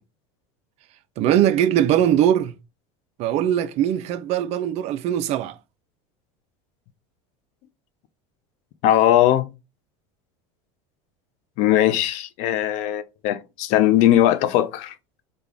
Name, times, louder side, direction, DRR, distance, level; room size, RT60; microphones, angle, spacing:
voice 1, 1.2-2.5 3.2-5.6, right 10 dB, 50° right, 0.4 m, -21 dB
voice 2, 8.8-9.5 11.6-14.9, left 12 dB, 55° left, 0.5 m, -19 dB
3.3 x 2.3 x 3.6 m
supercardioid pair, 115°, 14 cm